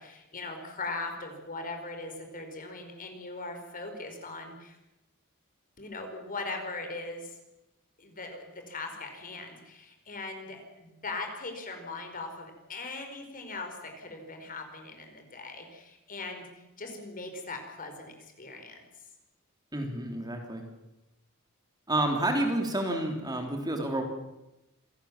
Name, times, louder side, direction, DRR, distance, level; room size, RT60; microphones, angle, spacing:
voice 1, 0.0-4.8 5.8-7.4 8.0-18.8, left 3 dB, 40° left, 5 dB, 4.9 m, -40 dB
voice 2, 19.7-20.6 21.9-24.0, right 1 dB, 20° right, 3 dB, 3.3 m, -29 dB
27.5 x 18.0 x 7.4 m, 0.94 s
head